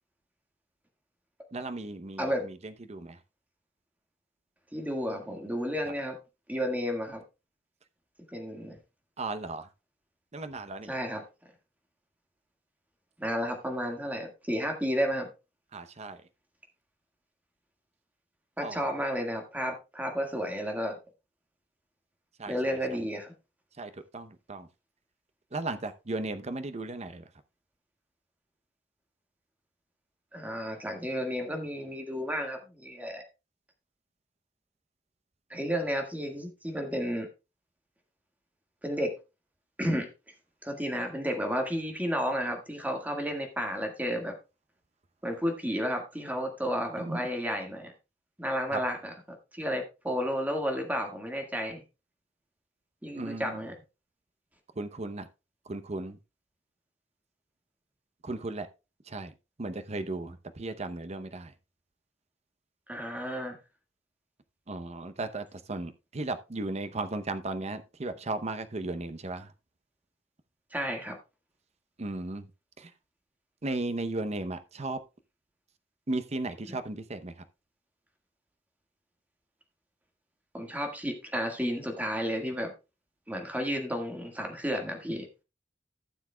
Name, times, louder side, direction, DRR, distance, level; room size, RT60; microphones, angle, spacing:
voice 1, 1.5-3.2 9.2-9.7 10.3-10.9 15.7-16.2 18.6-18.9 22.4-22.8 23.8-24.7 25.5-27.2 47.0-47.2 48.7-48.8 53.2-53.6 54.8-55.3 55.7-56.2 58.2-58.7 59.1-59.3 59.6-61.5 64.7-69.5 72.0-72.5 72.8-72.9 73.6-75.0 76.1-77.3, right 2 dB, 35° right, 0.7 m, -36 dB
voice 2, 4.7-6.2 6.5-7.2 8.3-8.8 10.9-11.2 13.2-15.3 18.6-21.0 22.5-23.3 30.3-33.2 35.5-37.3 38.8-39.1 39.8-40.1 40.6-44.3 45.2-47.9 48.4-49.1 49.5-51.8 53.0-53.7 62.9-63.6 70.7-71.2 76.7-76.8 80.5-82.7 83.3-85.3, equal, 10° right, 1.7 m, -32 dB
16.0 x 7.1 x 2.3 m
head